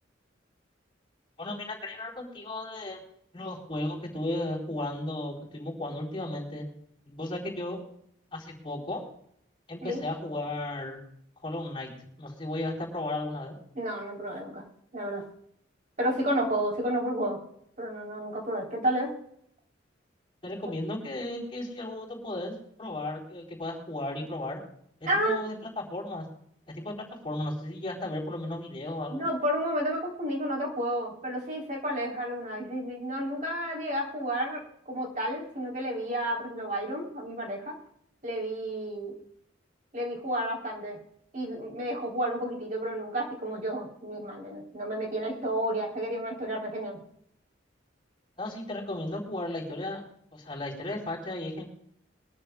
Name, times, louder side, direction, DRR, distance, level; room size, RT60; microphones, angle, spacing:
voice 1, 1.4-3.0 3.3-6.7 7.1-7.8 8.3-9.0 9.7-11.0 11.4-11.9 12.2-13.5 20.4-24.6 25.0-26.3 26.7-29.2 48.4-50.0 50.3-51.6, left 1 dB, 25° left, -3 dB, 4.0 m, -35 dB
voice 2, 13.8-14.6 14.9-15.2 16.0-17.4 17.8-19.1 25.1-25.4 29.1-37.7 38.2-39.1 39.9-41.0 41.3-47.0, right 1 dB, 40° right, -1 dB, 3.6 m, -31 dB
22.5 x 14.0 x 2.3 m, 0.69 s
head